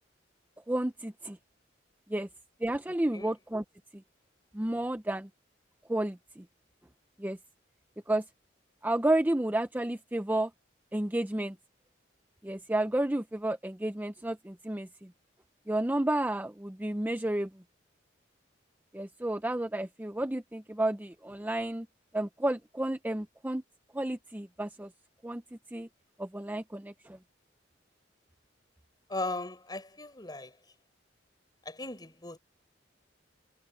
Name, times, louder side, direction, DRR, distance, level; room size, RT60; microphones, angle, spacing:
voice 1, 0.7-1.4 2.1-2.3 2.6-3.6 4.5-5.3 5.9-6.4 7.2-7.4 8.1-8.2 8.8-10.5 10.9-11.5 12.4-15.1 15.7-17.5 18.9-21.9 22.1-23.6 23.9-24.9 25.2-25.4 25.7-25.9 26.2-27.2, right 1 dB, 10° right, 0.6 m, -31 dB
voice 2, 29.1-30.5 31.6-32.4, left 2 dB, 20° left, 5.2 m, -37 dB
head